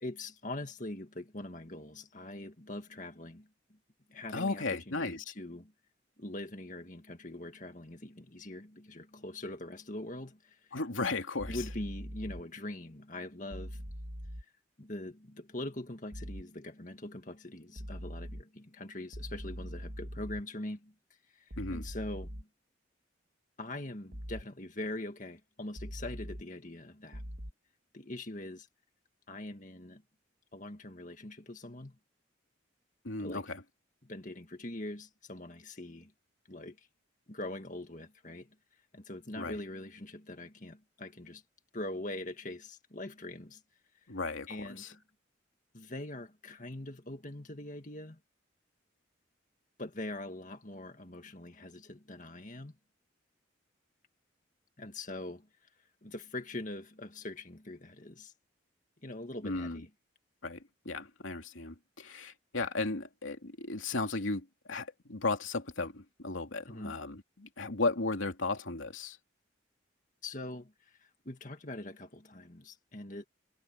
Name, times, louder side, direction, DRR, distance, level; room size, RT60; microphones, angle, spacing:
voice 1, 0.0-3.5 4.1-5.7 6.2-10.8 11.5-13.9 14.8-20.9 21.3-22.5 23.6-27.3 27.9-28.7 29.3-30.0 30.5-32.0 33.2-33.4 34.0-36.1 36.5-36.9 37.3-38.5 38.9-41.4 41.7-43.6 44.5-45.0 45.7-48.2 49.8-52.8 54.8-55.7 56.0-58.3 59.0-59.9 66.7-67.0 70.2-73.2, left 1 dB, 40° left, 2.0 m, -43 dB
voice 2, 4.3-5.2 10.7-11.6 21.6-21.9 33.0-33.6 39.4-39.6 44.1-44.9 59.4-59.8 60.4-69.2, left 3 dB, 85° left, 2.8 m, -35 dB
sound 1, 11.4-12.4 13.5-14.4 16.1-16.4 17.8-18.4 19.1-20.4 21.5-22.4 24.1-24.4 25.8-26.4 27.1-27.5, equal, 55° right, 2.9 m, -42 dB
head